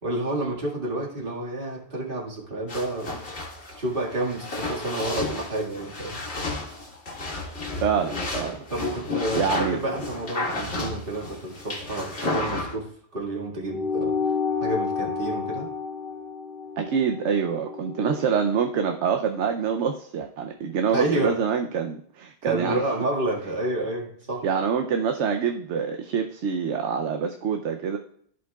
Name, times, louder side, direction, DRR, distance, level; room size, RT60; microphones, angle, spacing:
voice 1, 0.0-3.4 3.7-6.2 8.7-12.9 13.1-14.1 14.6-15.7 20.9-21.3 22.4-24.5, right 1 dB, 50° right, -2 dB, 2.1 m, -29 dB
sound 1, 2.7-12.8, left 2 dB, 65° left, 2.1 m, -32 dB
voice 2, 7.8-8.6 9.3-9.8 16.8-22.8 24.4-28.0, right 6 dB, 85° right, 5 dB, 1.0 m, -26 dB
sound 2, 13.7-18.5, left 5 dB, ahead, 1.9 m, -30 dB
15.0 x 5.1 x 2.3 m, 0.63 s
omnidirectional pair, 1.2 m